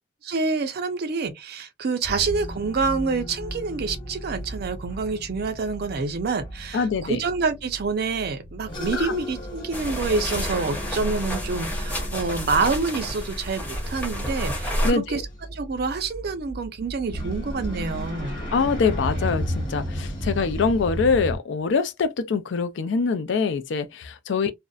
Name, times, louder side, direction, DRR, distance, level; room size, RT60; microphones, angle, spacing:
voice 1, 0.2-15.2 15.5-18.4 24.4-24.5, right 4 dB, 55° right, 0.5 m, -27 dB
sound 1, 2.0-21.4, equal, 25° left, 1.2 m, -34 dB
voice 2, 6.7-7.2 8.9-9.1 14.8-15.2 18.5-24.5, left 5 dB, 65° left, 0.4 m, -24 dB
sound 2, 9.7-14.9, equal, 10° left, 0.8 m, -29 dB
2.6 x 2.0 x 2.3 m
head